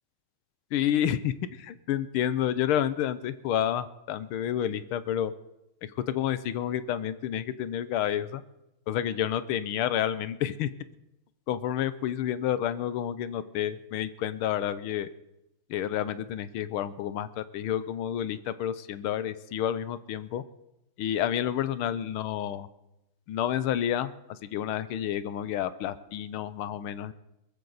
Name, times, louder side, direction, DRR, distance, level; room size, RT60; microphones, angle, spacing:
voice 1, 0.7-5.3 6.1-8.4 8.9-10.7 11.5-15.1 15.7-20.4 21.0-22.7 23.3-27.1, left 10 dB, 90° left, 14 dB, 1.6 m, -29 dB
22.0 x 14.5 x 4.0 m, 0.90 s
omnidirectional pair, 2.3 m